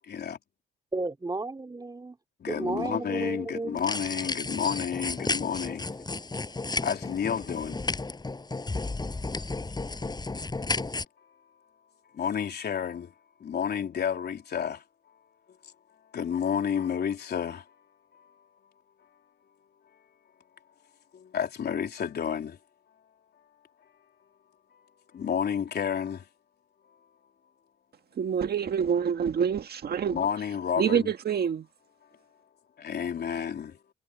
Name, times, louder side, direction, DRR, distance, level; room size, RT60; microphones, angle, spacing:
voice 1, 0.1-0.4 2.4-5.9 6.8-7.8 12.1-13.1 13.4-14.8 16.1-17.6 21.1-22.6 25.1-26.2 30.1-31.1 32.8-33.8, left 8 dB, 55° left, 3.9 m, -30 dB
voice 2, 0.9-2.2 2.5-3.8, right 2 dB, 20° right, 3.2 m, -33 dB
sound 1, 3.8-11.0, left 3 dB, 20° left, 6.4 m, -33 dB
voice 3, 28.2-30.2 30.8-31.7, right 7 dB, 55° right, 1.7 m, -26 dB
cardioid pair, 90°, 20 cm